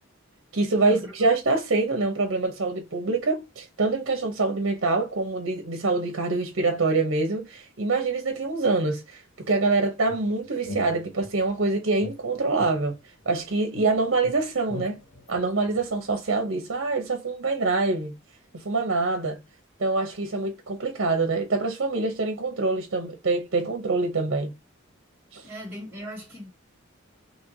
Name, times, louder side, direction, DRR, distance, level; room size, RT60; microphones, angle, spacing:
voice 1, 0.5-13.0 13.3-15.0 15.3-18.1 18.5-19.4 19.8-24.5 25.3-25.4, right 3 dB, 60° right, 0.8 m, -25 dB
sound 1, 10.1-11.5 12.0-13.4 13.7-16.3, left 1 dB, 65° left, 1.0 m, -42 dB
voice 2, 25.4-26.5, equal, 10° right, 1.0 m, -38 dB
4.4 x 2.9 x 2.6 m
head